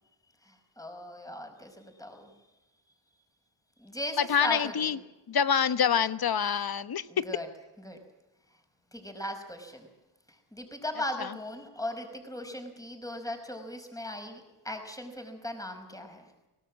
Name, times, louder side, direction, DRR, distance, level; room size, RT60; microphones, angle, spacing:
voice 1, 0.4-2.3 3.8-5.0 7.1-7.5 7.8-8.0 8.9-9.9 10.3-16.2, left 1 dB, 5° left, 5 dB, 5.6 m, -38 dB
voice 2, 4.3-5.0 5.3-7.0, left 7 dB, 50° left, 14 dB, 1.2 m, -26 dB
24.5 x 18.0 x 7.6 m, 1.0 s
cardioid pair, 75°, 46 cm